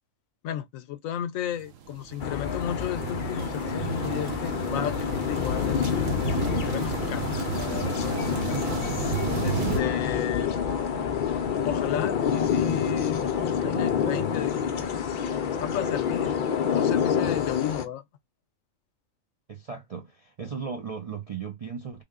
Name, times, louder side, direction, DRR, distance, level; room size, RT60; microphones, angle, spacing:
voice 1, 0.4-6.1 6.7-8.8 9.4-10.6 11.6-13.2 13.5-16.4 16.7-18.0, left 10 dB, 80° left, 1.0 m, -34 dB
sound 1, 1.6-9.8, right 8 dB, 75° right, 1.0 m, -33 dB
sound 2, 2.2-17.9, left 7 dB, 55° left, 0.5 m, -27 dB
voice 2, 19.5-22.0, right 6 dB, 55° right, 0.4 m, -36 dB
3.5 x 2.1 x 3.5 m
omnidirectional pair, 1.4 m